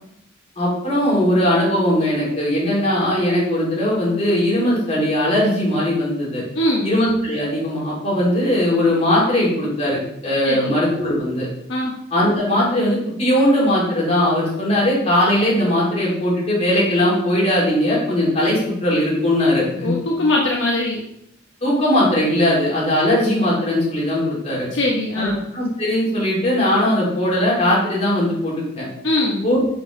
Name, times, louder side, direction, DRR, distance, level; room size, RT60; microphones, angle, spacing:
voice 1, 0.6-6.4 6.8-11.5 12.1-19.9 21.6-24.7 25.2-28.8 29.4-29.6, left 1 dB, 35° left, -5 dB, 3.2 m, -19 dB
voice 2, 6.5-6.9 10.4-10.7 11.7-11.9 19.8-21.0 24.7-25.4 29.0-29.4, left 1 dB, 65° left, -2 dB, 1.0 m, -21 dB
6.3 x 5.4 x 4.9 m, 0.77 s
head